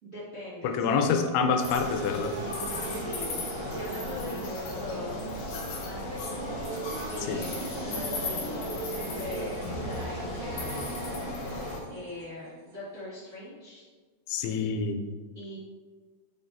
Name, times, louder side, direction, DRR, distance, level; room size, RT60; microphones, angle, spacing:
voice 1, 0.0-1.0 2.9-5.3 5.8-10.8 11.9-13.8 15.3-15.6, left 1 dB, 45° right, -11 dB, 1.0 m, -41 dB
voice 2, 0.6-2.4 7.3-7.5 14.3-15.0, left 5 dB, 90° left, 6 dB, 2.6 m, -27 dB
sound 1, 1.1-13.0, right 4 dB, 80° right, 2.0 m, -42 dB
sound 2, 1.6-11.8, left 1 dB, 65° left, 2.0 m, -35 dB
6.8 x 5.9 x 2.6 m, 1.4 s
omnidirectional pair, 4.5 m